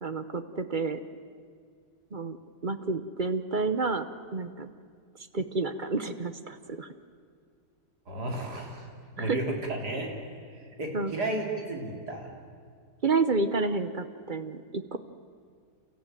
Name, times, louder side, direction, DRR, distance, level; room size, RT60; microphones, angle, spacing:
voice 1, 0.0-1.0 2.1-2.4 2.6-4.1 4.3-4.7 5.3-6.9 9.2-9.5 10.9-11.1 13.0-15.0, right 3 dB, 40° right, 10 dB, 0.8 m, -30 dB
voice 2, 8.1-10.1 10.8-12.3, right 2 dB, 65° right, 1 dB, 3.8 m, -33 dB
29.5 x 14.5 x 9.1 m, 2.1 s
omnidirectional pair, 1.8 m